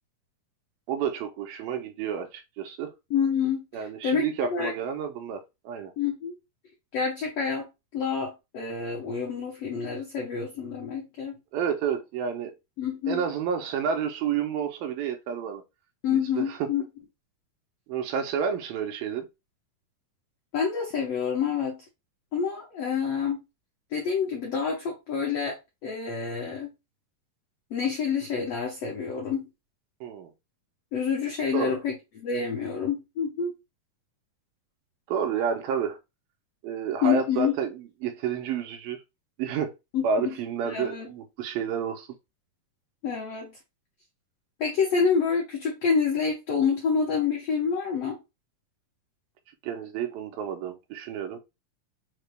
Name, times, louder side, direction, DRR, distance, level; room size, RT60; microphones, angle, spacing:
voice 1, 0.9-2.9 3.7-5.9 11.5-12.5 13.1-15.6 16.1-16.7 17.9-19.3 30.0-30.3 31.5-31.8 35.1-36.0 36.6-39.0 39.4-39.7 40.0-42.1 49.6-51.4, right 7 dB, 85° right, 2.5 m, -30 dB
voice 2, 3.1-4.2 4.5-4.7 6.0-6.4 6.9-11.4 12.8-13.2 16.0-16.8 20.5-21.8 22.3-23.4 23.9-26.7 27.7-29.4 30.9-33.5 37.0-37.5 39.9-40.3 40.7-41.1 43.0-43.5 44.6-48.2, left 6 dB, 80° left, 1.4 m, -28 dB
5.7 x 2.2 x 3.2 m
omnidirectional pair, 4.1 m